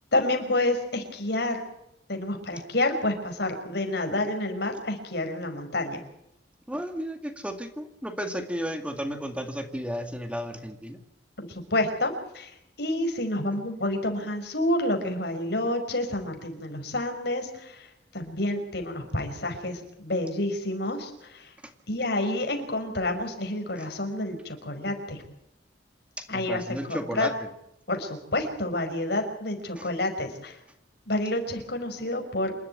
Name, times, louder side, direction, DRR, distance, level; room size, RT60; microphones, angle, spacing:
voice 1, 0.1-1.6 2.1-6.0 11.4-12.5 12.8-21.5 21.9-25.2 26.3-26.6 26.9-27.3 27.9-30.6 31.1-32.6, left 1 dB, 65° left, 5 dB, 5.4 m, -29 dB
voice 2, 6.7-11.0 26.2-27.3 29.8-29.9, equal, 5° right, 6 dB, 2.1 m, -33 dB
28.0 x 12.5 x 9.6 m, 0.81 s
head